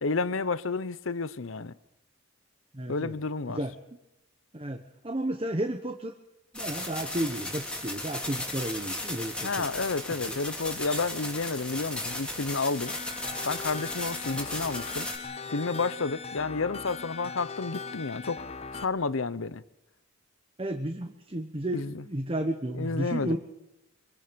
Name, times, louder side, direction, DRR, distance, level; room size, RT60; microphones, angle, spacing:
voice 1, 0.0-1.7 2.9-3.6 9.4-13.0 13.4-15.1 15.5-18.4 18.7-19.6 21.7-22.1 22.7-23.4, left 4 dB, 70° left, 0.8 m, -31 dB
voice 2, 2.7-3.1 3.5-3.7 4.5-6.1 6.5-9.7 20.6-23.4, right 1 dB, 25° right, 1.1 m, -32 dB
sound 1, 6.5-15.2, left 1 dB, 5° left, 3.2 m, -36 dB
sound 2, 12.9-18.8, left 4 dB, 30° left, 1.1 m, -39 dB
25.5 x 23.5 x 5.3 m
head